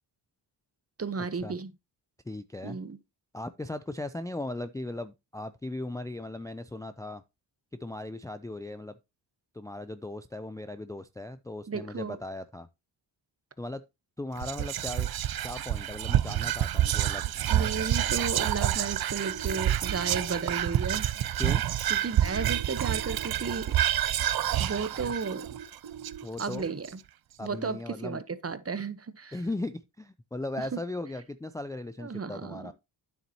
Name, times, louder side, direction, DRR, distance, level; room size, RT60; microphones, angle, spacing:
voice 1, 1.0-1.7 2.6-3.0 11.7-12.2 17.5-21.2 21.9-23.8 24.6-25.5 26.4-26.9 27.4-29.4 30.7-30.8 32.0-32.7, right 5 dB, 30° right, 1.0 m, -34 dB
voice 2, 2.3-2.8 3.3-7.2 7.8-9.0 9.5-12.7 13.6-13.8 14.2-15.1 15.4-17.3 21.4-21.6 26.2-26.6 27.4-28.2 29.3-32.7, left 2 dB, 10° left, 0.4 m, -37 dB
Whispering, 14.4-26.9, right 12 dB, 55° right, 0.6 m, -28 dB
sound 1, 19.3-20.2 22.2-23.2 25.2-26.2, right 8 dB, 75° right, 2.4 m, -43 dB
9.1 x 7.1 x 2.8 m
cardioid pair, 60°, 46 cm